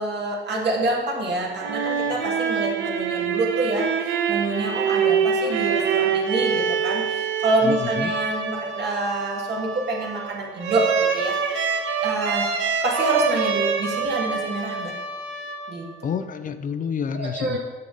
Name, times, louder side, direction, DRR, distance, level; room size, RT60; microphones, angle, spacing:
voice 1, 0.0-3.9 4.3-10.9 11.1-11.3 12.0-12.5 12.8-14.9 15.7-15.9 17.1-17.6, right 2 dB, 60° right, -1 dB, 1.8 m, -26 dB
sound 1, 1.4-16.0, right 6 dB, 80° right, 0.8 m, -25 dB
voice 2, 7.6-8.1 16.0-17.6, left 7 dB, 45° left, 11 dB, 0.4 m, -28 dB
6.7 x 6.6 x 3.8 m, 1.3 s
cardioid pair, 90°, 20 cm